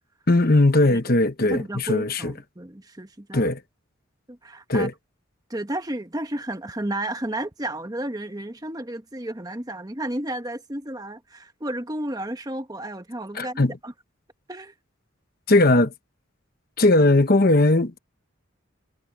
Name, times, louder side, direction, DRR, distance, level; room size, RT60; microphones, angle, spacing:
voice 1, 0.3-2.3 3.3-3.6 4.7-4.9 13.3-13.7 15.5-15.9 16.8-18.0, left 2 dB, 45° left, 1.1 m, -19 dB
voice 2, 0.9-1.2 1.5-3.5 4.3-4.9 5.5-13.9 14.5-14.7, right 1 dB, 20° right, 1.1 m, -32 dB
head